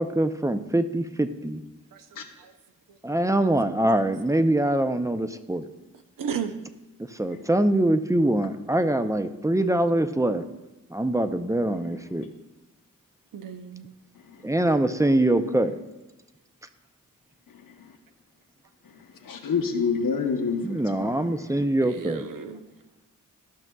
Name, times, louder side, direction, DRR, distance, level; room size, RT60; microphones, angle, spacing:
voice 1, 0.0-1.6 3.0-5.7 7.0-10.4 10.9-12.2 14.4-15.7 20.6-22.3, right 1 dB, 10° right, 9 dB, 0.4 m, -24 dB
voice 2, 6.2-6.5 13.3-13.9 21.8-22.6, right 7 dB, 75° right, 8 dB, 0.7 m, -34 dB
voice 3, 17.5-17.9 18.9-19.0 19.2-21.3, left 5 dB, 80° left, 4 dB, 0.9 m, -28 dB
13.5 x 6.0 x 2.3 m, 1.0 s
cardioid pair, 55°, 33 cm